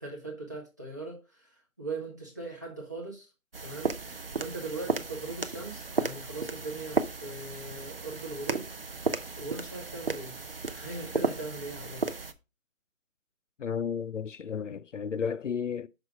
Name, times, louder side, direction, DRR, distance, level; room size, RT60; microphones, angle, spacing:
voice 1, 0.0-3.3 3.6-8.7 9.1-10.4 10.7-12.0, right 3 dB, 15° right, 1.0 m, -40 dB
sound 1, 3.5-12.3, right 3 dB, 45° right, 0.6 m, -34 dB
voice 2, 13.6-15.9, left 7 dB, 65° left, 0.5 m, -33 dB
6.5 x 4.7 x 4.9 m
figure-of-eight pair, 175°, 40 cm